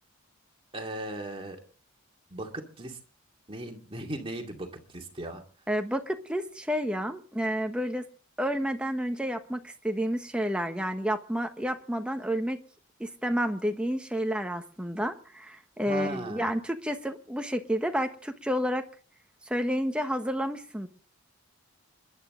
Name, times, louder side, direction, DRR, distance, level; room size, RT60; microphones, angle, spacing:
voice 1, 0.7-1.6 2.3-3.0 3.5-5.4 15.9-16.5, right 1 dB, 25° right, 2 dB, 2.4 m, -37 dB
voice 2, 5.7-8.1 8.4-12.6 13.0-18.8 19.5-20.9, equal, 5° right, 5 dB, 1.2 m, -30 dB
27.0 x 11.5 x 3.8 m, 0.41 s
head